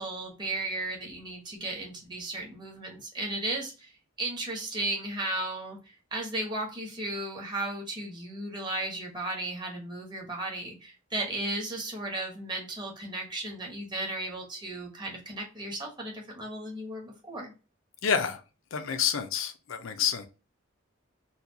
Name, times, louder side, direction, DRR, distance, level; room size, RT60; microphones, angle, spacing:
voice 1, 0.0-3.9 4.2-5.8 6.1-17.5, right 2 dB, 20° right, 0 dB, 0.9 m, -35 dB
voice 2, 18.0-18.4 18.7-20.3, left 7 dB, 80° left, 8 dB, 0.5 m, -28 dB
4.1 x 2.3 x 2.8 m, 0.32 s
head